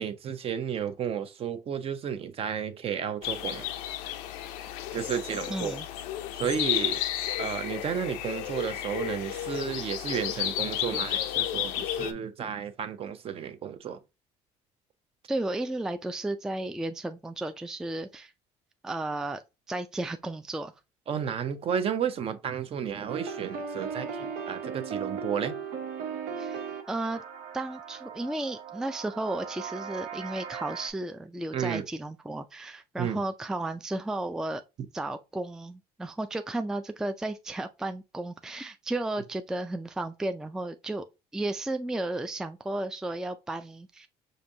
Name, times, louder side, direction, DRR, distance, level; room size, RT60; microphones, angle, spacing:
voice 1, 0.0-3.7 4.9-5.8 6.3-7.0 7.4-14.0 21.1-25.6 31.5-31.9 33.0-33.2, right 8 dB, 45° right, 0.6 m, -32 dB
sound 1, 3.2-12.1, left 12 dB, 90° left, 0.5 m, -32 dB
voice 2, 5.5-5.9 15.3-18.3 18.8-19.4 19.7-20.7 26.4-27.2 27.5-34.6 34.9-41.1 41.3-44.1, right 2 dB, 5° right, 0.3 m, -33 dB
sound 2, 23.1-30.9, right 6 dB, 80° right, 0.8 m, -37 dB
5.1 x 2.6 x 2.7 m
cardioid pair, 100°, 14 cm